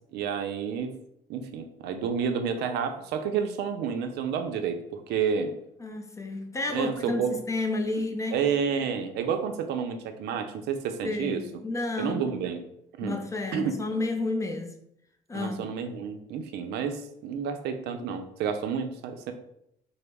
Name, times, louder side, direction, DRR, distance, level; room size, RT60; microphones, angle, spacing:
voice 1, 0.1-0.9 1.3-5.5 6.7-7.4 8.3-11.4 12.0-12.6 13.0-13.2 13.5-13.8 15.3-19.3, right 6 dB, 80° right, 0.4 m, -30 dB
voice 2, 5.8-8.4 11.0-12.2 13.0-14.8 15.3-15.6, left 2 dB, 20° left, 0.4 m, -31 dB
3.8 x 2.0 x 3.4 m
cardioid pair, 110°, 17 cm